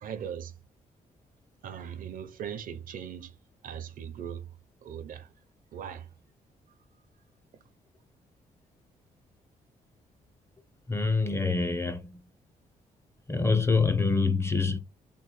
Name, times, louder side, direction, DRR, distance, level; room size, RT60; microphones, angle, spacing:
voice 1, 0.0-0.5 1.6-3.3 3.6-4.5 4.8-5.3 5.7-6.1, right 8 dB, 70° right, 0.6 m, -39 dB
voice 2, 10.9-12.2 13.3-14.8, left 4 dB, 15° left, 0.5 m, -25 dB
3.6 x 2.1 x 4.0 m
cardioid pair, 110°, 15 cm